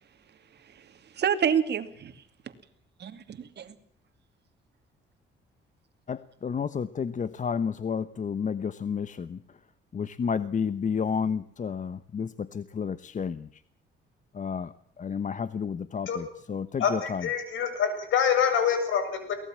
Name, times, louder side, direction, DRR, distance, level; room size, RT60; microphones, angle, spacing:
voice 1, 0.6-2.5 3.0-3.7, right 8 dB, 60° right, 2.6 m, -29 dB
voice 2, 6.1-9.4 9.9-13.5 14.3-17.3, left 6 dB, 40° left, 1.0 m, -31 dB
voice 3, 16.8-19.3, left 7 dB, 75° left, 7.2 m, -26 dB
23.0 x 18.5 x 7.4 m
cardioid pair, 90°, 20 cm